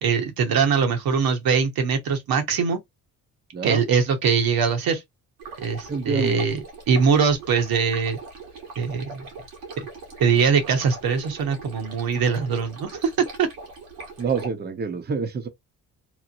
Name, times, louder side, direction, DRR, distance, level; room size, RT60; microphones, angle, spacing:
voice 1, 0.0-2.8 3.6-5.0 5.6-6.6 6.9-8.2 8.8-9.2 9.8-9.9 10.2-13.1 13.4-13.5, right 6 dB, 65° right, 1.0 m, -22 dB
Stream, 5.4-14.5, right 3 dB, 90° right, 1.4 m, -40 dB
voice 2, 5.9-6.4 14.2-15.5, right 5 dB, 25° right, 0.6 m, -27 dB
3.0 x 2.1 x 2.5 m
supercardioid pair, 70°, 38 cm